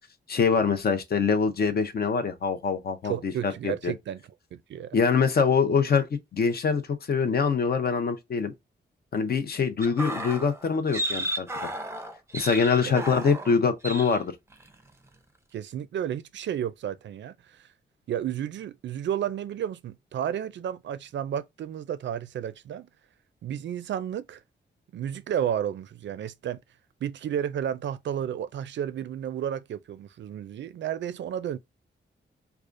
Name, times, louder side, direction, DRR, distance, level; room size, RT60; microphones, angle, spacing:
voice 1, 0.3-3.9 4.9-8.5 9.1-11.7 12.3-14.3, left 5 dB, 55° left, 0.7 m, -24 dB
voice 2, 3.0-4.2 4.5-5.0 12.9-13.0 15.5-17.7 18.1-22.9 23.4-24.4 24.9-26.6 27.0-31.6, right 9 dB, 70° right, 0.4 m, -32 dB
sound 1, 9.8-13.6 13.8-14.2 14.5-14.7, right 1 dB, 15° right, 0.5 m, -33 dB
4.8 x 2.4 x 2.5 m
wide cardioid pair, 120°, 19 cm